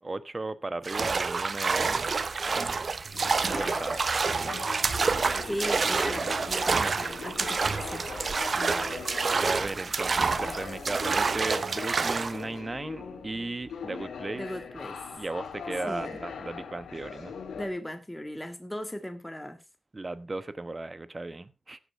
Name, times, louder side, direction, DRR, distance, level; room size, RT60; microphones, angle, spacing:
voice 1, 0.0-1.9 2.5-2.9 3.5-4.6 5.3-5.8 8.5-14.5 15.1-17.3 19.9-21.8, right 2 dB, 35° right, 1.1 m, -36 dB
sound 1, 0.8-12.4, right 4 dB, 60° right, 0.7 m, -28 dB
sound 2, 3.1-17.7, left 6 dB, 85° left, 2.0 m, -41 dB
voice 2, 5.4-8.1 14.3-15.1 15.9-16.2 17.6-19.6, equal, 10° left, 1.8 m, -37 dB
15.5 x 9.0 x 3.5 m
cardioid pair, 45°, 0 cm